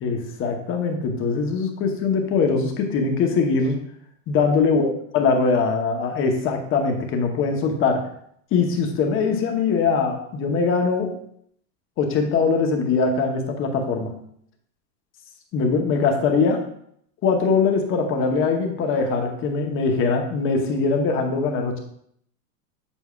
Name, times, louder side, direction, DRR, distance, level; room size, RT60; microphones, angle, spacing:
voice 1, 0.0-3.8 4.3-4.9 5.1-8.1 8.5-11.1 12.0-14.1 15.5-16.6 17.2-21.8, left 4 dB, 25° left, 3 dB, 0.9 m, -22 dB
7.8 x 7.1 x 2.3 m, 0.67 s
supercardioid pair, 140°, 48 cm